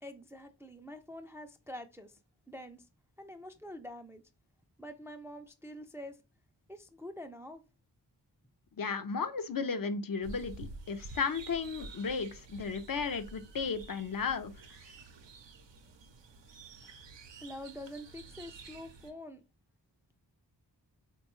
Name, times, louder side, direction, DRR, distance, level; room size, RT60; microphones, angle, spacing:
voice 1, 0.0-2.2 2.5-2.9 3.2-4.2 4.8-6.2 6.7-7.6 17.4-19.4, left 1 dB, 5° right, 0.4 m, -46 dB
voice 2, 8.8-14.5, left 5 dB, 50° left, 0.5 m, -34 dB
sound 1, 10.2-19.1, right 3 dB, 80° right, 0.6 m, -50 dB
3.5 x 2.2 x 3.0 m
cardioid pair, 45°, 43 cm